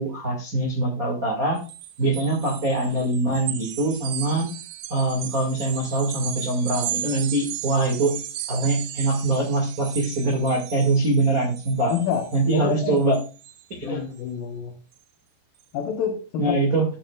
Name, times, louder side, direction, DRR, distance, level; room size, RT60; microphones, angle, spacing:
voice 1, 0.0-1.6 2.0-4.5 4.9-8.2 8.5-11.9 12.3-13.2 13.7-14.0 16.4-16.8, right 2 dB, 55° right, -1 dB, 0.9 m, -23 dB
sound 1, 1.6-13.6, right 11 dB, 80° right, 2.9 m, -36 dB
voice 2, 11.9-12.3 12.5-13.0 13.8-14.8 15.7-16.6, left 8 dB, 70° left, 4 dB, 2.2 m, -27 dB
13.0 x 7.5 x 2.3 m, 0.34 s
omnidirectional pair, 5.2 m